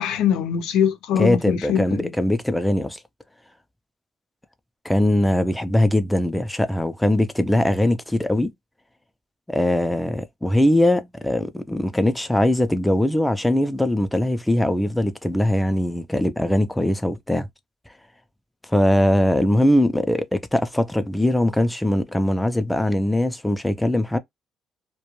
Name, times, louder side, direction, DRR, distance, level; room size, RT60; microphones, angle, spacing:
voice 1, 0.0-2.1, left 8 dB, 85° left, 0.6 m, -22 dB
voice 2, 1.2-3.0 4.8-8.5 9.5-17.5 18.7-24.2, left 1 dB, 5° left, 0.5 m, -21 dB
2.3 x 2.2 x 3.1 m
cardioid pair, 80°, 0 cm